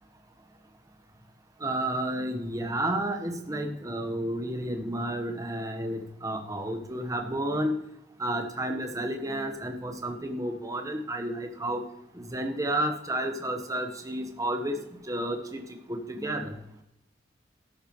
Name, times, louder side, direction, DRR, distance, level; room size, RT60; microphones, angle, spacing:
voice 1, 1.6-7.8 8.2-11.8 12.1-14.8 15.1-15.6 15.9-16.6, right 1 dB, 20° right, 4 dB, 1.2 m, -31 dB
12.5 x 12.0 x 3.2 m, 0.81 s
head